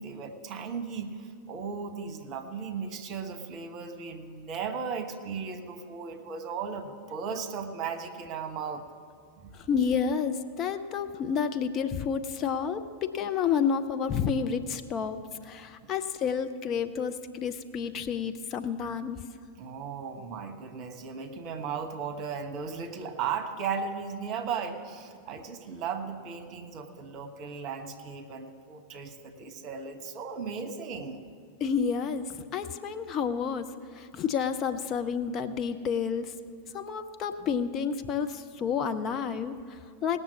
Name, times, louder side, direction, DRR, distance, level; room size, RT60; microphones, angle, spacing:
voice 1, 0.0-8.9 9.4-9.5 19.6-31.2, right 6 dB, 40° right, 7 dB, 1.1 m, -36 dB
voice 2, 9.5-15.2 15.4-19.2 31.6-33.7 33.9-36.3 36.7-40.2, left 6 dB, 30° left, 9 dB, 0.6 m, -30 dB
18.0 x 6.8 x 7.3 m, 2.2 s
figure-of-eight pair, 90°, 0 cm